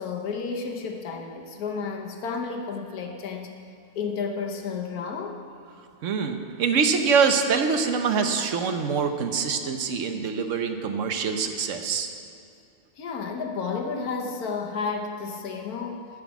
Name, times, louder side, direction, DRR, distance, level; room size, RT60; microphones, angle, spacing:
voice 1, 0.0-3.5 3.9-5.4 13.0-16.1, left 5 dB, 90° left, 3 dB, 1.5 m, -31 dB
voice 2, 6.0-12.1, right 5 dB, 60° right, 6 dB, 1.1 m, -24 dB
13.0 x 6.1 x 7.2 m, 2.3 s
omnidirectional pair, 1.5 m